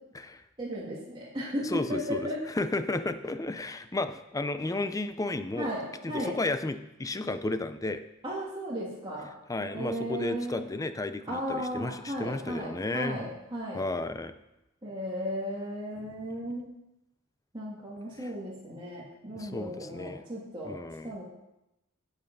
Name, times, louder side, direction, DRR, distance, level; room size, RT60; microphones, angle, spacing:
voice 1, 0.6-2.4 5.6-6.3 8.2-9.3 9.6-10.6 11.3-13.8 14.8-16.7 17.5-20.8 21.0-21.2, equal, 25° right, -7 dB, 2.0 m, -35 dB
voice 2, 1.6-5.7 6.0-8.0 9.5-13.3 13.7-14.3 18.2-18.3 19.4-20.2 20.6-21.2, left 2 dB, 15° left, 10 dB, 0.5 m, -33 dB
8.5 x 8.2 x 5.3 m, 0.90 s
head